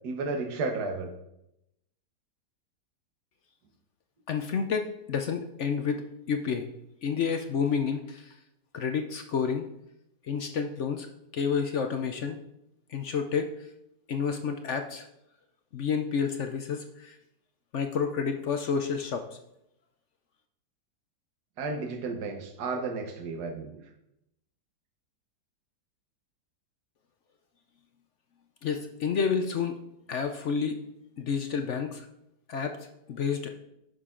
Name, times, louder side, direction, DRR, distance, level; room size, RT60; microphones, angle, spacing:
voice 1, 0.0-1.1 21.6-23.8, right 3 dB, 70° right, 3 dB, 1.7 m, -33 dB
voice 2, 4.3-6.0 6.3-6.7 7.0-8.3 8.7-9.7 10.3-11.1 11.3-12.4 12.9-13.5 14.1-15.1 15.7-17.2 17.7-19.2 28.6-29.8 30.1-30.8 31.2-32.1 32.5-32.8 33.1-33.5, left 6 dB, 60° left, 6 dB, 0.8 m, -29 dB
10.5 x 6.4 x 3.7 m, 0.82 s
omnidirectional pair, 1.8 m